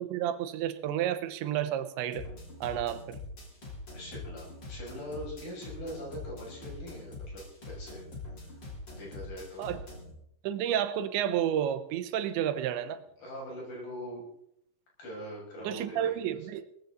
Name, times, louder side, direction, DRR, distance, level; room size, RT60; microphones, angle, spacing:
voice 1, 0.0-2.3 2.6-3.2 9.6-9.8 10.4-13.0 15.6-16.6, right 10 dB, 90° right, 11 dB, 3.3 m, -31 dB
sound 1, 2.1-10.1, left 2 dB, 25° left, 4.1 m, -44 dB
voice 2, 3.9-8.0 8.4-8.6 8.9-9.7 13.2-14.2 15.0-16.2, equal, 50° left, -3 dB, 8.2 m, -42 dB
19.5 x 15.0 x 3.9 m, 0.71 s
omnidirectional pair, 5.1 m